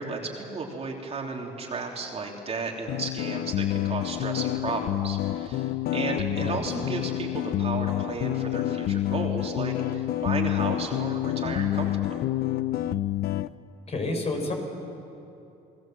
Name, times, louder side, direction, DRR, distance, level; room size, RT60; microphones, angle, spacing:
voice 1, 0.0-12.2, right 3 dB, 35° right, 0 dB, 3.4 m, -34 dB
sound 1, 2.9-13.5, left 13 dB, 65° left, 0.7 m, -28 dB
voice 2, 6.3-6.6 13.9-14.5, left 2 dB, 40° left, 3 dB, 5.5 m, -30 dB
30.0 x 20.0 x 7.7 m, 2.8 s
cardioid pair, 110°, 17 cm